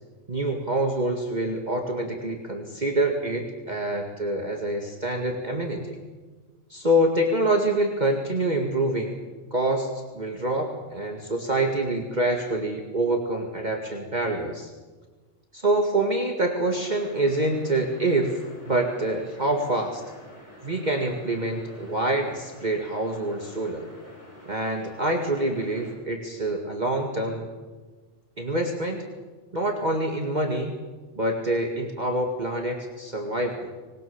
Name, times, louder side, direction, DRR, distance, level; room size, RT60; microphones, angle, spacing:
voice 1, 0.3-6.0 6.7-9.2 9.5-14.7 15.5-20.0 20.6-23.9 24.5-27.5 28.4-29.0 29.5-30.7 31.2-33.7, right 1 dB, 35° right, 2 dB, 2.3 m, -26 dB
sound 1, 16.7-25.9, left 1 dB, 60° left, 7.5 m, -48 dB
25.0 x 21.0 x 7.3 m, 1.3 s
omnidirectional pair, 1.3 m